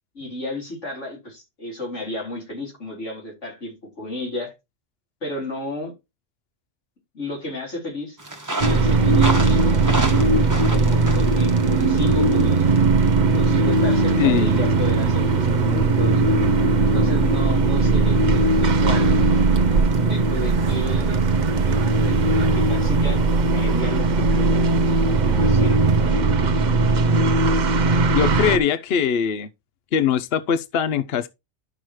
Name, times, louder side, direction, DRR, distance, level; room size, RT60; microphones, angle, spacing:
voice 1, 0.1-4.5 5.2-5.9 7.1-8.2 8.6-9.8 10.6-12.6 13.3-16.2 16.9-19.2 20.0-21.2 21.6-23.2 23.5-24.7 25.0-26.6, left 1 dB, 80° left, 4.3 m, -33 dB
sound 1, 8.2-23.8, right 1 dB, 15° right, 1.3 m, -36 dB
sound 2, 8.6-28.6, right 3 dB, 45° right, 0.7 m, -18 dB
voice 2, 14.2-14.7 28.1-29.5 29.9-31.3, left 8 dB, 60° left, 0.8 m, -21 dB
sound 3, 20.3-26.1, right 8 dB, 80° right, 1.0 m, -37 dB
12.0 x 6.0 x 3.1 m
omnidirectional pair, 1.2 m